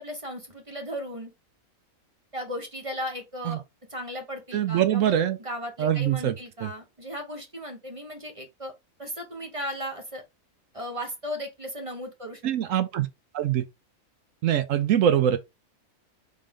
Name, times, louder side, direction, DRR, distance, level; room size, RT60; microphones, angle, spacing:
voice 1, 0.0-1.3 2.3-3.6 3.9-8.7 9.0-10.2 10.7-12.4, equal, 25° right, 0.9 m, -36 dB
voice 2, 4.5-5.4 5.8-6.7 12.4-13.1 13.3-13.7 14.4-15.4, right 10 dB, 70° right, 0.9 m, -23 dB
3.8 x 3.7 x 3.6 m
omnidirectional pair, 1.5 m